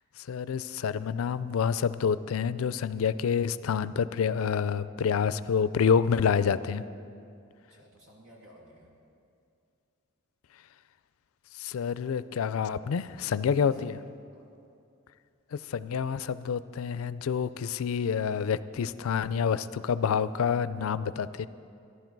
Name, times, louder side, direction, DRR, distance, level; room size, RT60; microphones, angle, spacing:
voice 1, 0.3-6.8 11.6-14.0 15.5-21.5, left 7 dB, 85° left, 16 dB, 0.4 m, -28 dB
voice 2, 7.7-8.9 13.3-14.5, equal, 80° right, -2 dB, 2.5 m, -55 dB
14.5 x 11.0 x 4.6 m, 2.5 s
head